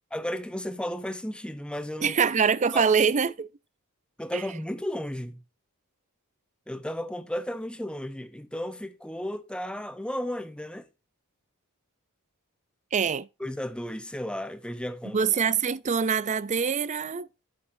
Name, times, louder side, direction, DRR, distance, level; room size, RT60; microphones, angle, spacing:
voice 1, 0.1-2.2 2.7-2.8 4.2-5.4 6.7-10.9 13.4-15.2, left 1 dB, 5° left, 0.8 m, -34 dB
voice 2, 2.0-3.5 4.3-4.4 12.9-13.3 15.1-17.3, right 6 dB, 30° right, 0.4 m, -24 dB
10.5 x 8.4 x 2.7 m
head